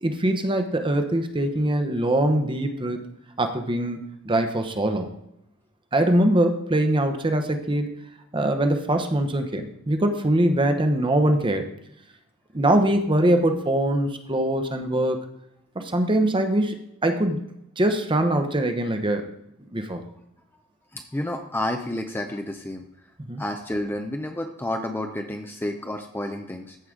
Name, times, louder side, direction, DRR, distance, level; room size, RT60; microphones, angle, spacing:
voice 1, 0.0-3.1 3.4-5.1 5.9-7.9 8.3-11.6 12.5-15.2 15.8-17.4 17.8-19.3 19.7-20.0 23.3-23.4, right 1 dB, 20° right, 6 dB, 0.8 m, -23 dB
voice 2, 20.9-22.8 23.4-26.8, left 1 dB, 10° left, 4 dB, 0.5 m, -30 dB
14.5 x 4.9 x 3.7 m, 0.82 s
head